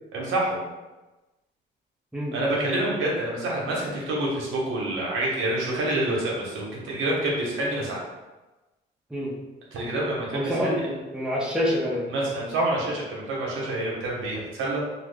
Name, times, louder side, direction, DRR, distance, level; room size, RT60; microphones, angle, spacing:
voice 1, 0.1-0.6 2.3-8.0 9.7-10.8 12.1-14.8, right 1 dB, 85° right, -4 dB, 1.0 m, -27 dB
voice 2, 10.3-12.1, equal, 5° right, -4 dB, 0.8 m, -27 dB
2.9 x 2.4 x 3.4 m, 1.1 s
cardioid pair, 90°, 20 cm